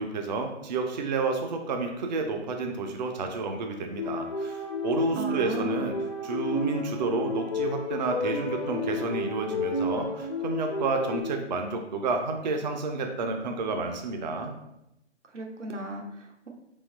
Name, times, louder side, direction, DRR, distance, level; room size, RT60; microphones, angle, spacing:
voice 1, 0.0-6.0 6.2-14.5, right 3 dB, 40° right, 4 dB, 0.4 m, -30 dB
sound 1, 4.0-11.2, left 2 dB, 25° left, 0.4 m, -31 dB
voice 2, 5.2-5.8 15.3-16.5, right 2 dB, 85° right, 1 dB, 0.9 m, -36 dB
3.8 x 2.7 x 3.9 m, 0.87 s
figure-of-eight pair, 135°, 35 cm